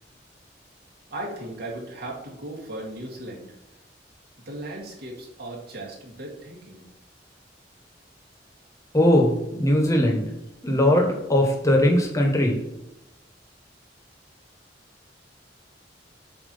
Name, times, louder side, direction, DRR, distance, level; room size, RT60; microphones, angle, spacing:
voice 1, 1.1-3.5 4.5-6.9, right 1 dB, 60° right, -3 dB, 1.9 m, -37 dB
voice 2, 8.9-10.3 10.6-12.6, left 1 dB, 20° left, 0 dB, 1.3 m, -20 dB
7.6 x 3.0 x 5.5 m, 0.91 s
head